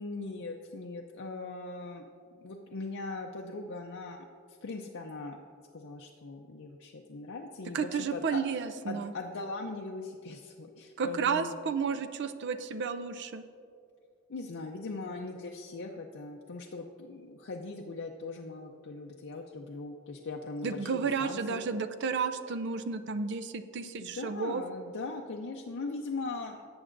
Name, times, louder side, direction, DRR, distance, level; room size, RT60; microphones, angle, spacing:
voice 1, 0.0-2.1 2.4-4.3 4.6-5.4 5.7-8.4 8.9-11.6 14.3-21.7 24.0-26.6, left 3 dB, 60° left, 0 dB, 0.5 m, -40 dB
voice 2, 7.7-9.1 11.0-13.4 20.6-24.6, right 5 dB, 55° right, 10 dB, 0.4 m, -32 dB
17.0 x 7.9 x 2.6 m, 2.4 s
head